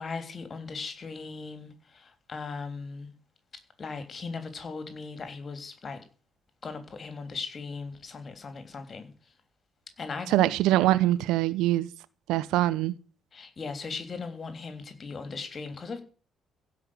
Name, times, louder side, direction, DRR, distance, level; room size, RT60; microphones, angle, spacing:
voice 1, 0.0-3.1 3.8-6.0 6.6-9.3 10.0-10.5 13.3-16.0, left 4 dB, 35° left, 3.3 m, -38 dB
voice 2, 10.3-11.9 12.3-12.9, right 15 dB, 65° right, 0.7 m, -23 dB
15.5 x 5.8 x 9.4 m
figure-of-eight pair, 45°, 0 cm